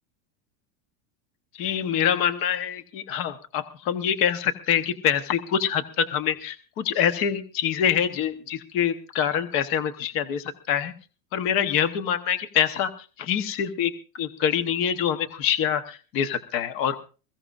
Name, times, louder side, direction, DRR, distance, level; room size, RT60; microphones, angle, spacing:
voice 1, 1.5-10.9 11.3-12.9 13.2-17.0, left 9 dB, 30° left, 10 dB, 1.0 m, -25 dB
21.5 x 16.0 x 2.5 m, 0.35 s
supercardioid pair, 180°, 43 cm